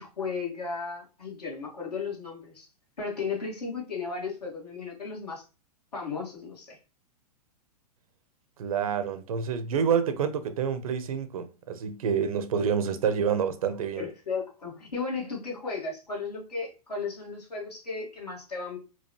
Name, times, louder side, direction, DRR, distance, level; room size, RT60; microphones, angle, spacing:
voice 1, 0.0-2.7 3.0-5.4 5.9-6.8 14.0-18.8, left 4 dB, 75° left, 1.8 m, -35 dB
voice 2, 8.6-14.0, right 7 dB, 60° right, 0.6 m, -28 dB
4.5 x 2.3 x 2.8 m
figure-of-eight pair, 105°, 20 cm